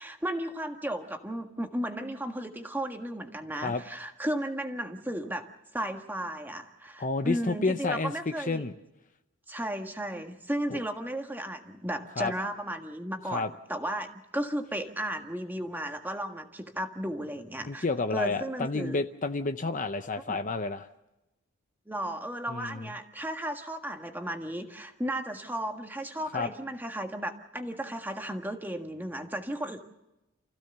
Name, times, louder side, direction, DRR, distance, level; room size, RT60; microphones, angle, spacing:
voice 1, 0.0-8.6 9.5-17.9 18.1-19.0 20.3-20.4 21.9-29.8, right 1 dB, 10° right, 5 dB, 1.5 m, -34 dB
voice 2, 7.0-8.1 8.5-8.7 10.7-10.8 12.2-12.3 13.3-13.5 17.6-20.9 22.5-22.9 26.3-26.5, left 3 dB, 35° left, 8 dB, 0.7 m, -30 dB
29.0 x 15.5 x 6.9 m, 0.96 s
head